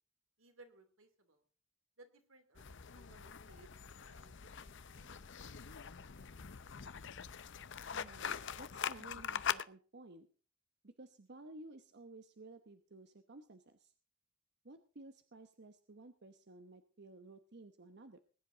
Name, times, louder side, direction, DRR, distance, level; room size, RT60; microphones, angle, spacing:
voice 1, 0.4-1.4 2.0-6.3, right 2 dB, 85° right, 7 dB, 2.9 m, -64 dB
sound 1, 2.6-9.6, left 8 dB, 65° left, 0.7 m, -43 dB
voice 2, 7.9-10.3 10.8-13.9 14.6-18.2, right 2 dB, 55° right, 8 dB, 1.0 m, -55 dB
20.5 x 10.5 x 3.9 m, 0.39 s
head